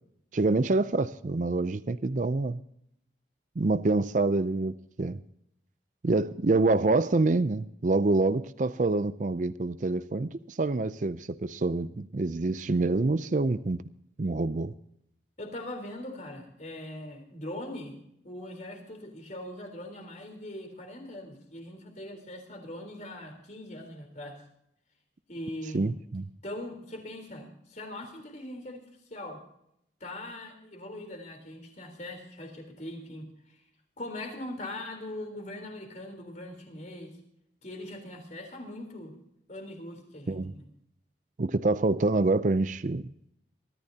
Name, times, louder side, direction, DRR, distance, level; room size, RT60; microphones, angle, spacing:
voice 1, 0.3-2.6 3.6-5.2 6.0-13.8 14.2-14.7 25.7-26.3 40.3-40.5 41.4-43.1, right 3 dB, 40° right, 14 dB, 0.5 m, -26 dB
voice 2, 15.4-18.0 18.2-24.4 25.3-25.9 26.4-28.8 29.1-29.4 30.0-33.6 34.0-37.2 37.6-39.2 39.5-40.6, left 1 dB, 40° left, 4 dB, 3.8 m, -41 dB
23.5 x 14.0 x 2.8 m, 0.75 s
head